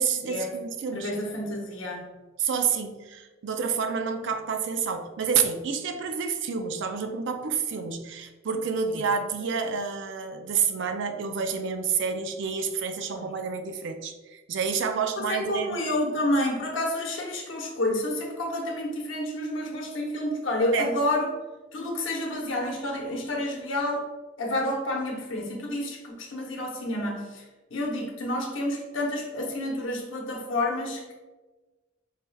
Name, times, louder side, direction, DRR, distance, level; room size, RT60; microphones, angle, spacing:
voice 1, 0.0-1.1 2.4-15.8 20.7-20.9, right 6 dB, 65° right, 7 dB, 0.4 m, -29 dB
voice 2, 0.9-2.1 8.9-9.0 13.2-13.3 15.2-21.3 21.7-24.0 24.4-27.4 27.7-31.1, left 1 dB, 70° left, 0 dB, 0.8 m, -29 dB
4.7 x 3.2 x 2.2 m, 1.2 s
head